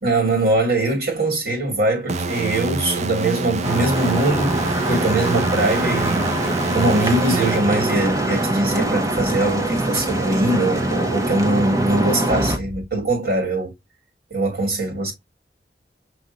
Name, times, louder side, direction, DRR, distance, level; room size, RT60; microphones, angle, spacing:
voice 1, 0.0-6.3 6.7-13.7 14.3-15.1, right 2 dB, 70° right, 2.3 m, -22 dB
sound 1, 2.1-8.6, right 3 dB, 40° right, 0.5 m, -26 dB
sound 2, 3.6-12.6, right 1 dB, 20° right, 0.9 m, -23 dB
6.2 x 2.6 x 2.6 m
head